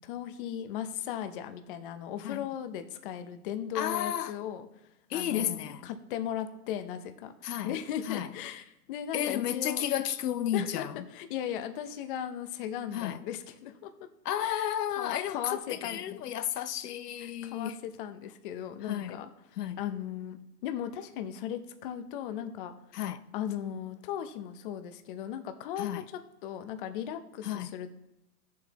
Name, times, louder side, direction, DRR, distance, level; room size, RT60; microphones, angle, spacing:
voice 1, 0.0-9.9 10.5-13.9 14.4-16.2 17.2-22.7 23.3-26.0 26.4-27.9, left 10 dB, 35° left, 0.7 m, -37 dB
voice 2, 3.7-4.3 5.1-5.9 7.4-7.7 8.1-8.3 9.1-11.0 12.9-13.2 14.2-17.8 18.9-19.2 19.6-19.8 22.9-23.2 25.8-26.0 27.4-27.7, left 11 dB, 80° left, 0.7 m, -32 dB
15.5 x 7.2 x 3.0 m
hypercardioid pair, 145°, 47 cm